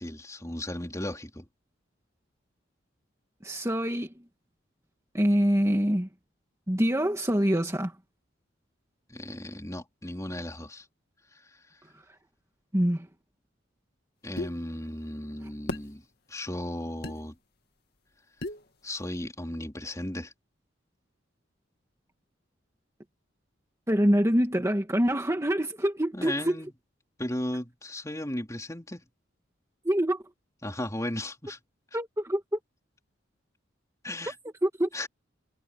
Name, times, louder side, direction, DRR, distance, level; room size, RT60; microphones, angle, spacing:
voice 1, 0.0-1.5 9.1-10.9 11.5-11.6 14.2-16.0 16.3-17.4 18.8-20.3 26.1-26.7 27.2-29.0 30.6-31.6 34.0-34.3 34.9-35.1, left 1 dB, 15° left, 3.6 m, -35 dB
voice 2, 3.4-4.1 5.1-6.1 6.7-7.9 12.7-13.1 23.9-26.5 29.9-30.2 31.9-32.6 34.6-34.9, equal, 15° right, 1.8 m, -25 dB
sound 1, 14.4-14.5 15.7-15.9 17.0-17.2 18.4-18.6, left 2 dB, 55° left, 2.3 m, -33 dB
head